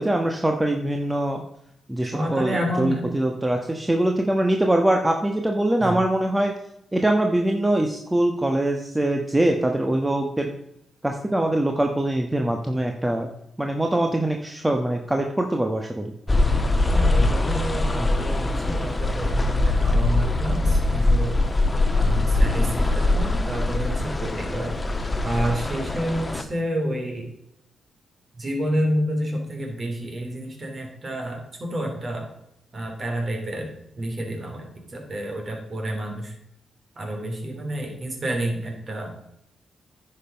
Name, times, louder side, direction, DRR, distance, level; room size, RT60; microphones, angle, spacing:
voice 1, 0.0-1.4 1.9-6.5 6.9-10.6 11.0-13.3 13.6-16.1, right 1 dB, 15° right, 3 dB, 1.2 m, -23 dB
voice 2, 2.0-3.0 5.8-6.0 16.9-21.4 21.9-24.8 25.2-27.3 28.4-32.3 32.7-36.3 37.0-39.2, right 1 dB, 45° right, 2 dB, 3.4 m, -29 dB
sound 1, 16.3-26.4, left 2 dB, 25° left, 1.2 m, -22 dB
9.9 x 5.6 x 5.2 m, 0.79 s
hypercardioid pair, 40°, 0 cm